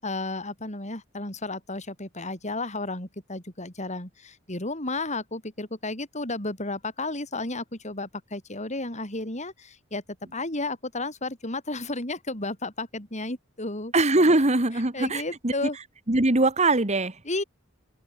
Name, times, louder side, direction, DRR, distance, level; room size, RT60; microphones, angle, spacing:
voice 1, 0.0-10.0 10.3-13.9 14.9-15.8 17.3-17.4, left 2 dB, 35° left, 7.0 m, -33 dB
voice 2, 13.9-15.5 16.1-17.2, right 2 dB, 35° right, 1.8 m, -22 dB
open air
head